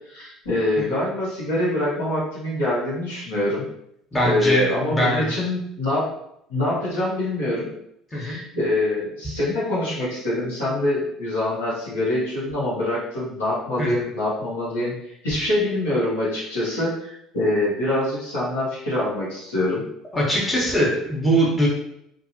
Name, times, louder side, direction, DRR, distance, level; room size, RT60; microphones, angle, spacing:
voice 1, 0.0-3.7 4.2-6.1 6.5-7.7 8.1-19.8, left 1 dB, 90° left, -8 dB, 1.1 m, -25 dB
voice 2, 4.1-5.3 8.1-8.4 13.8-13.9 20.1-21.7, equal, 20° left, -4 dB, 1.1 m, -21 dB
2.5 x 2.5 x 2.7 m, 0.76 s
hypercardioid pair, 70°, 0 cm